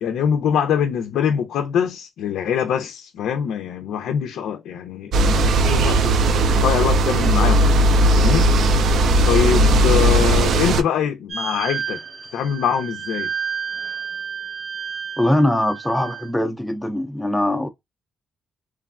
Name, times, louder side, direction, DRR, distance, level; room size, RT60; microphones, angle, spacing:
voice 1, 0.0-5.1 5.6-7.9 8.2-8.5 9.2-12.0 12.3-13.3, left 8 dB, 85° left, 0.4 m, -23 dB
sound 1, 5.1-10.8, right 1 dB, 75° right, 0.4 m, -17 dB
sound 2, 11.3-16.3, right 7 dB, 55° right, 0.8 m, -31 dB
voice 2, 15.2-17.7, left 1 dB, 5° left, 0.4 m, -21 dB
3.2 x 2.1 x 2.3 m
cardioid pair, 80°, 0 cm